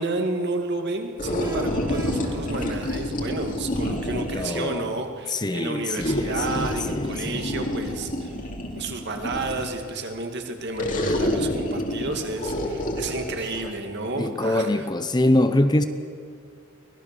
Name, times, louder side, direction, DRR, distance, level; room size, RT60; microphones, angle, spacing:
voice 1, 0.0-8.4 8.7-14.9, right 2 dB, 50° right, 5 dB, 2.2 m, -31 dB
sound 1, 1.2-4.6 6.0-9.8 10.8-13.7, left 1 dB, 40° left, 2.6 m, -28 dB
sound 2, 1.4-3.4, equal, 15° right, 2.8 m, -39 dB
voice 2, 4.1-4.9 5.3-7.5 14.2-15.8, left 1 dB, 20° left, 9 dB, 0.7 m, -24 dB
24.0 x 18.5 x 6.9 m, 2.4 s
head